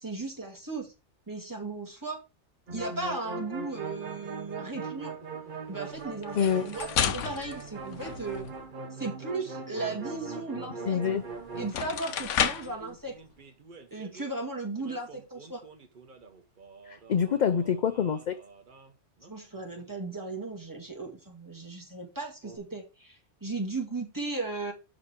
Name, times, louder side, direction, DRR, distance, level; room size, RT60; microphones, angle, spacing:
voice 1, 0.0-0.9 1.3-2.2 2.7-5.1 5.7-8.4 8.9-11.0 11.6-13.1 13.9-15.6 19.3-24.7, right 3 dB, 15° right, 2.1 m, -36 dB
sound 1, 2.7-14.3 14.8-18.9 19.2-19.3 19.6-19.9 22.4-22.6, right 4 dB, 45° right, 1.1 m, -42 dB
sound 2, 6.2-8.6 11.1-11.2 11.6-12.8, left 8 dB, 90° left, 1.1 m, -31 dB
voice 2, 6.3-6.7 10.8-11.2 16.9-18.4, left 7 dB, 55° left, 0.5 m, -26 dB
5.9 x 5.1 x 5.8 m
omnidirectional pair, 1.2 m